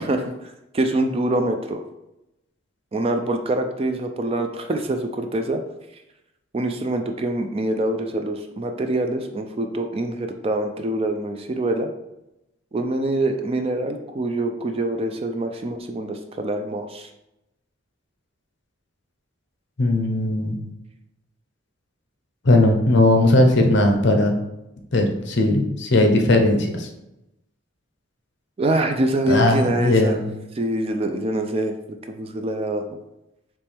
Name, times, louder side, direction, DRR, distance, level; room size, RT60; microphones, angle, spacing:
voice 1, 0.7-1.8 2.9-5.6 6.5-11.9 12.7-17.1 28.6-30.2 30.6-31.8 32.1-33.0, right 1 dB, 30° right, 5 dB, 0.3 m, -25 dB
voice 2, 19.8-20.6 22.4-24.3 24.9-26.9 29.3-30.2, left 2 dB, 55° left, 3 dB, 0.7 m, -18 dB
4.4 x 3.1 x 3.4 m, 0.91 s
head